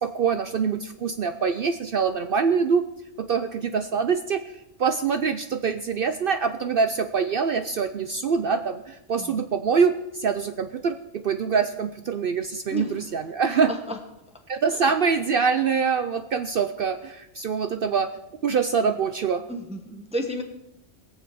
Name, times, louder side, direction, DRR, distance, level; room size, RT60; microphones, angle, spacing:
voice 1, 0.0-2.8 3.2-4.4 4.8-13.7 14.5-18.1 18.4-19.4, right 6 dB, 55° right, 9 dB, 0.7 m, -24 dB
voice 2, 13.5-14.0 14.7-14.8 19.5-20.4, equal, 5° right, 3 dB, 1.0 m, -32 dB
21.5 x 7.3 x 5.0 m, 0.86 s
omnidirectional pair, 1.3 m